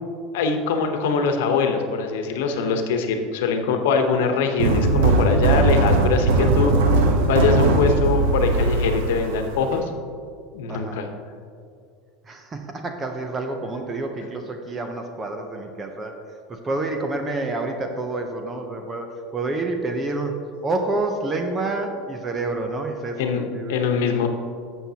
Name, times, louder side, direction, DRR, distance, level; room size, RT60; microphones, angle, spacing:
voice 1, 0.3-6.7 7.3-9.9 10.5-11.0 23.2-23.4 23.7-24.3, left 5 dB, 85° left, 5 dB, 1.0 m, -22 dB
sound 1, 4.6-9.8, right 2 dB, 85° right, 1.1 m, -19 dB
voice 2, 10.7-11.0 12.2-16.2 16.5-23.9, right 2 dB, 20° right, 4 dB, 0.6 m, -28 dB
12.0 x 7.2 x 2.8 m, 2.3 s
supercardioid pair, 160°, 0 cm